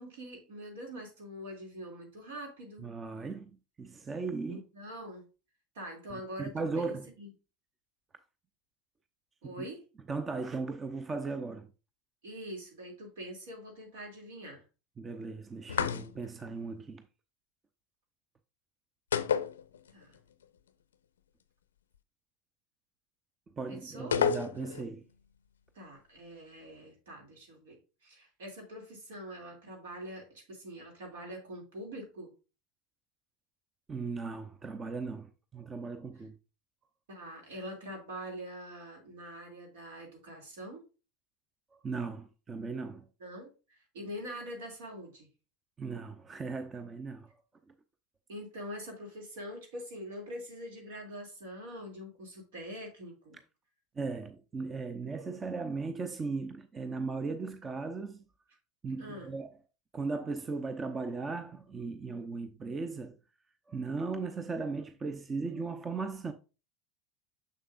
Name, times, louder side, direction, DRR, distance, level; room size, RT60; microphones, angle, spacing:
voice 1, 0.0-2.9 4.5-5.3 5.7-7.3 9.4-9.8 12.2-14.6 19.9-20.2 23.7-24.2 25.7-32.3 37.1-40.8 43.2-45.3 48.3-53.4 59.0-59.3, equal, 75° right, 2.5 m, -44 dB
voice 2, 2.8-4.6 6.1-7.1 9.4-9.6 10.1-11.7 15.0-17.1 23.5-25.1 33.9-36.4 41.7-43.1 45.8-47.4 47.7-47.8 53.9-58.3 58.8-59.6 59.9-63.2 63.7-66.3, right 4 dB, 25° right, 0.6 m, -37 dB
sound 1, 15.7-16.4 19.1-20.2 20.4-20.5 24.1-24.9, left 7 dB, 85° left, 0.4 m, -30 dB
6.7 x 6.5 x 2.5 m
hypercardioid pair, 85°, 0 cm